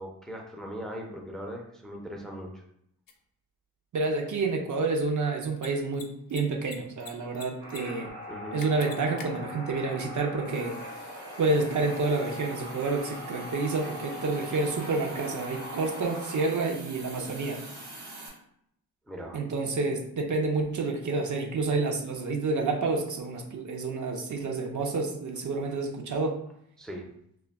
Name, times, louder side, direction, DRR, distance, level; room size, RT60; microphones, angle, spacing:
voice 1, 0.0-2.6 8.3-8.6 19.1-19.4 26.8-27.1, equal, ahead, 1 dB, 0.4 m, -39 dB
Mechanisms, 3.1-3.2 5.5-5.7 5.9-6.0 6.3-7.1 7.3-7.8 8.1-8.2 8.6-9.3, left 5 dB, 60° left, 0.5 m, -43 dB
voice 2, 3.9-8.1 8.5-10.7 11.4-17.6 19.3-26.4, right 3 dB, 50° right, 1 dB, 0.5 m, -29 dB
sound 1, 7.6-16.5, left 1 dB, 70° right, 1.1 m, -41 dB
Hiss, 10.4-18.3, right 2 dB, 90° right, 0.9 m, -46 dB
2.2 x 2.1 x 3.4 m, 0.72 s
cardioid pair, 60°, 38 cm